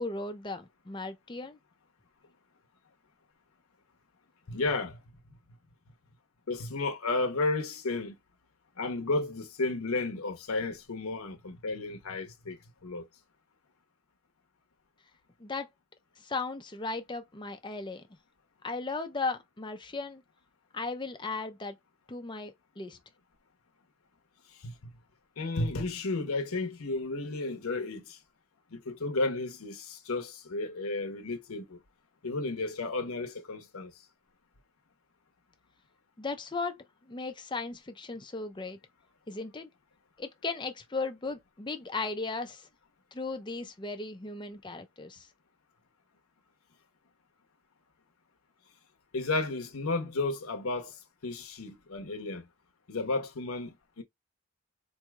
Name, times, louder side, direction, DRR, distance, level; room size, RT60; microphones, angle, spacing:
voice 1, 0.0-1.6 15.4-15.7 16.2-18.0 18.6-20.2 20.7-21.8 22.1-23.0 36.2-38.8 39.3-39.7 40.2-42.7 43.1-45.3, left 3 dB, 20° left, 0.5 m, -36 dB
voice 2, 4.5-5.0 6.5-8.1 8.8-13.1 24.5-25.0 25.4-28.2 28.7-31.8 32.2-33.9 49.1-52.5 52.9-54.0, left 3 dB, 80° left, 0.9 m, -33 dB
4.4 x 2.7 x 2.3 m
head